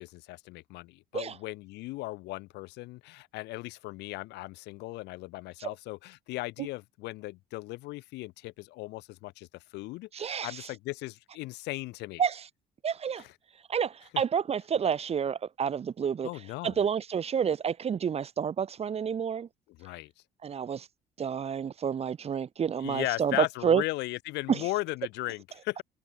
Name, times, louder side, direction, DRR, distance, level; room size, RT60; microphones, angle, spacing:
voice 1, 0.0-12.2 13.2-13.3 16.2-16.8 19.8-20.1 22.8-25.8, left 20 dB, 90° left, 3.2 m, -37 dB
voice 2, 10.1-10.6 12.2-12.4 12.8-13.2 13.7-16.3 16.6-19.5 20.4-20.9 21.2-23.8 24.5-24.6, right 7 dB, 35° right, 1.1 m, -29 dB
cardioid pair, 110°, 17 cm